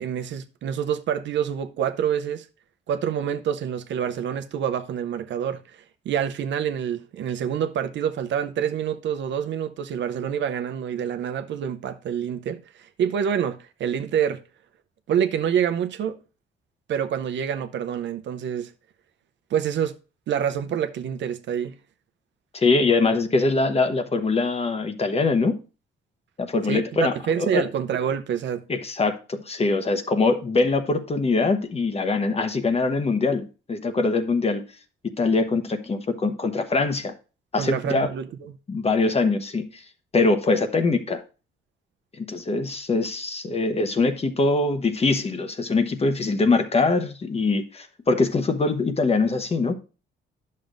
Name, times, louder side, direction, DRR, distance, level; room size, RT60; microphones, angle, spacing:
voice 1, 0.0-2.5 2.9-14.4 15.1-16.2 16.9-18.7 19.5-19.9 20.3-21.7 26.7-26.8 27.1-28.6 37.6-38.3, right 8 dB, 65° right, 0.7 m, -27 dB
voice 2, 22.5-25.6 26.4-27.6 28.7-34.6 35.0-37.1 37.5-38.1 38.7-39.8 40.1-41.2 42.1-49.7, left 3 dB, 30° left, 1.0 m, -23 dB
10.5 x 6.6 x 2.6 m
cardioid pair, 90°, 20 cm